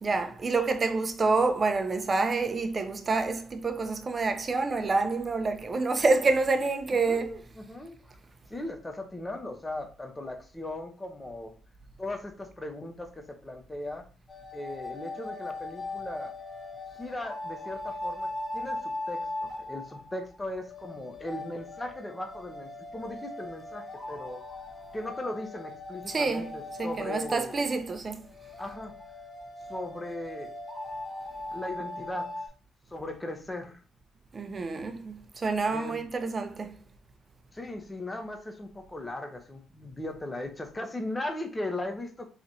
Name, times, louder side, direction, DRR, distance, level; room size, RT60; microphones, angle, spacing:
voice 1, 0.0-7.4 26.1-26.5 26.8-28.2 34.3-36.7, right 3 dB, 35° right, 0.6 m, -27 dB
voice 2, 6.9-8.0 8.5-11.5 12.0-14.1 14.5-16.3 17.0-24.4 24.9-27.6 28.6-29.0 29.7-30.5 31.5-32.3 32.9-33.8 35.7-36.0 37.5-42.3, left 1 dB, 20° left, 0.8 m, -38 dB
sound 1, 14.3-32.5, left 2 dB, 35° left, 1.4 m, -39 dB
3.9 x 3.0 x 2.7 m
cardioid pair, 90°, 0 cm